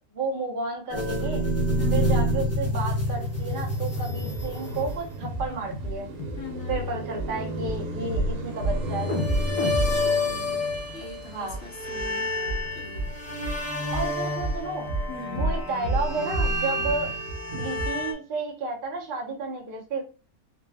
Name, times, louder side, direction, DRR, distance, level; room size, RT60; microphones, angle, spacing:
voice 1, 0.1-1.4 1.9-6.1 6.7-9.1 11.3-11.6 13.9-14.9 15.3-17.1 17.6-20.0, right 3 dB, 45° right, -1 dB, 0.8 m, -32 dB
sound 1, 0.9-5.1 8.9-11.3 11.6-18.1, left 1 dB, 20° left, 0.4 m, -29 dB
voice 2, 1.8-2.2 6.4-6.8 9.6-10.6 10.9-13.2 15.1-15.4, left 3 dB, 55° left, 2 dB, 0.9 m, -42 dB
Car passing by, 2.8-15.2 15.6-18.1, right 1 dB, 70° right, 1.3 m, -37 dB
sound 2, 4.3-4.5 4.7-5.0 5.2-5.5 5.7-5.9 6.2-6.4 6.7-6.8 7.2-7.3 7.6-7.7 8.1-8.3 8.6-8.8 9.1-11.1 11.5-11.6 12.0-12.1 12.5-12.6 12.9-13.1 13.4-13.6 13.9-14.1 14.4-14.6 14.9-15.1 15.4-15.6 15.8-16.1 16.3-16.5 16.8-17.0 17.3-17.4 17.8-17.9, right 1 dB, 85° left, 1.4 m, -28 dB
4.0 x 2.2 x 3.4 m, 0.34 s
omnidirectional pair, 1.6 m